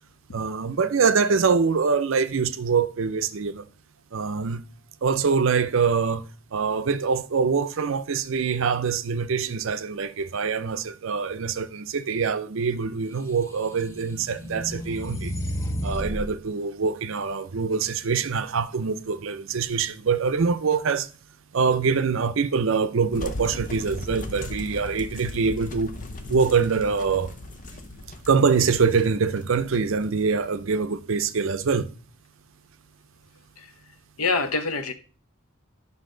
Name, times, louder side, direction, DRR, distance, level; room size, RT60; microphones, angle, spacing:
voice 1, 0.3-3.7 4.1-4.6 5.0-6.3 6.5-15.3 15.8-21.1 21.5-25.9 26.3-27.3 28.3-31.9, right 5 dB, 60° right, 0.5 m, -24 dB
sound 1, 13.4-16.3, equal, 15° left, 0.9 m, -32 dB
sound 2, 23.1-30.7, left 2 dB, 35° left, 0.7 m, -38 dB
voice 2, 34.2-34.9, left 4 dB, 75° left, 0.9 m, -25 dB
9.7 x 5.7 x 3.8 m
head